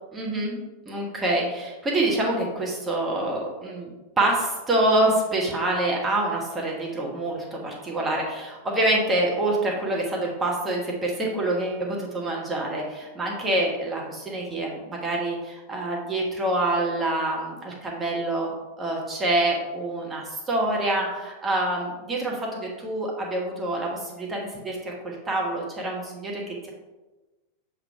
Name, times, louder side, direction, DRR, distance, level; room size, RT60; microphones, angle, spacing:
voice 1, 0.1-3.9 4.2-18.5 18.8-26.7, right 1 dB, 15° right, -2 dB, 1.2 m, -26 dB
6.5 x 3.6 x 4.5 m, 1.1 s
figure-of-eight pair, 90°, 0 cm